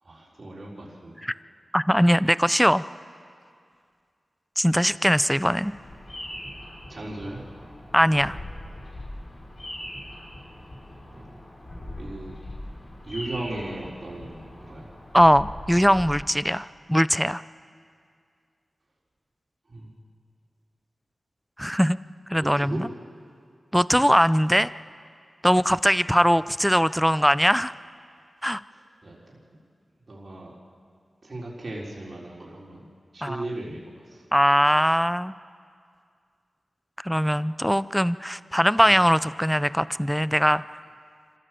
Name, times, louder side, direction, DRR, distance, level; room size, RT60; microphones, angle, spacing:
voice 1, 0.0-1.2 6.9-7.5 8.2-8.3 11.1-11.4 11.7-12.4 13.0-14.9 19.7-19.9 22.3-22.8 28.7-29.6 30.1-30.5 31.2-32.9 33.1-34.2 38.8-39.1, right 2 dB, 55° right, -4 dB, 4.2 m, -37 dB
voice 2, 1.7-2.8 4.6-5.7 7.9-8.4 15.1-17.4 21.6-22.0 22.3-22.9 23.7-24.7 25.4-27.7 28.4-28.6 33.2-33.4 34.3-35.3 37.0-40.6, equal, ahead, 16 dB, 0.5 m, -21 dB
Bird vocalization bird call bird song, 5.6-16.1, left 1 dB, 60° left, 5.4 m, -41 dB
26.0 x 15.5 x 7.7 m, 2.2 s
cardioid pair, 45°, 0 cm